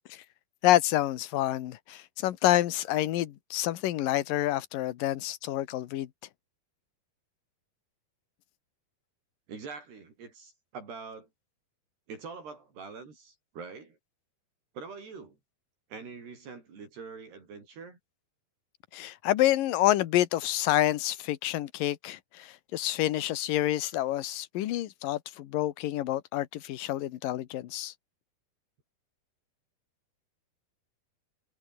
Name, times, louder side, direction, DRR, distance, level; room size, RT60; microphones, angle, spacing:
voice 1, 0.6-6.1 18.9-27.9, left 14 dB, 65° left, 2.7 m, -28 dB
voice 2, 9.5-11.3 12.1-14.0 14.7-15.4 15.9-18.0, right 5 dB, 75° right, 8.3 m, -44 dB
omnidirectional pair, 4.7 m